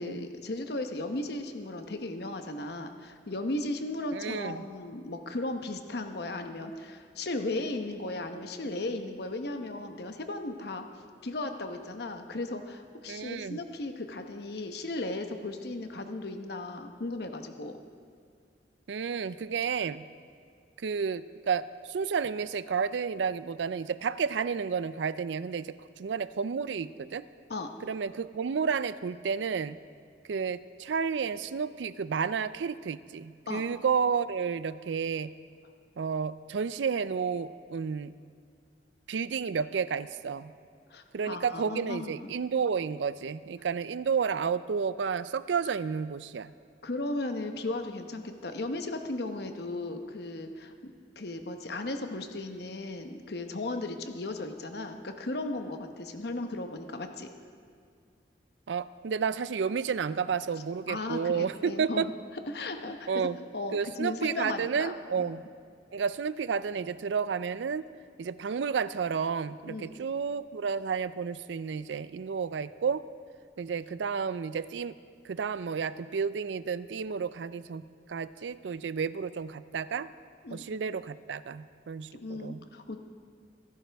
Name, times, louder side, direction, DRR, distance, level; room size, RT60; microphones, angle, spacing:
voice 1, 0.0-10.8 11.2-17.8 27.5-27.7 33.5-33.7 40.9-42.1 46.8-50.9 51.2-57.3 60.9-62.1 62.5-63.1 63.5-65.3 69.7-69.9 80.4-80.6 82.1-83.0, left 2 dB, 65° left, 6 dB, 1.0 m, -36 dB
voice 2, 4.1-4.6 13.1-13.6 18.9-20.1 20.8-27.2 27.8-29.8 30.3-35.3 36.0-38.1 39.1-40.5 41.1-46.5 58.7-62.1 63.1-63.4 63.7-65.5 65.9-67.9 68.2-73.0 73.6-75.0 75.2-80.1 80.5-82.6, right 6 dB, 85° right, 15 dB, 0.4 m, -31 dB
25.0 x 11.5 x 3.5 m, 2.2 s
head